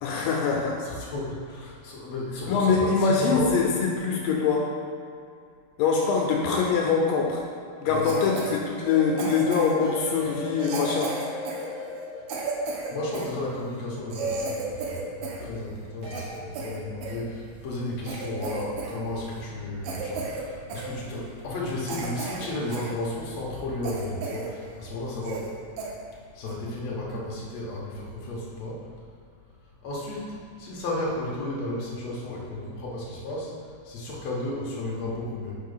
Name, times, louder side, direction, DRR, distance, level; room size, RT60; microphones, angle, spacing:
voice 1, 0.0-0.8 2.5-4.7 5.8-7.4 7.8-11.2, left 5 dB, 85° left, 0 dB, 2.4 m, -23 dB
voice 2, 0.8-3.5 7.9-8.2 12.6-25.5 26.3-28.8 29.8-33.5 33.8-35.6, left 1 dB, 60° left, -4 dB, 2.1 m, -33 dB
Cough, 8.0-8.6 9.2-9.9 10.6-13.3 13.8-13.9 14.1-15.5 15.8-17.2 17.7-17.8 18.0-19.0 19.2-19.4 19.8-20.4 20.7-20.9 21.4-21.5 21.9-22.9 23.3-23.4 23.8-24.5 24.8-24.9 25.2-25.5 25.8-25.9 26.5-26.7, right 3 dB, 80° right, 2.4 m, -34 dB
sound 1, 8.8-14.9 16.0-16.3, left 2 dB, 45° right, 1.4 m, -38 dB
5.7 x 4.7 x 5.5 m, 2.3 s
omnidirectional pair, 4.0 m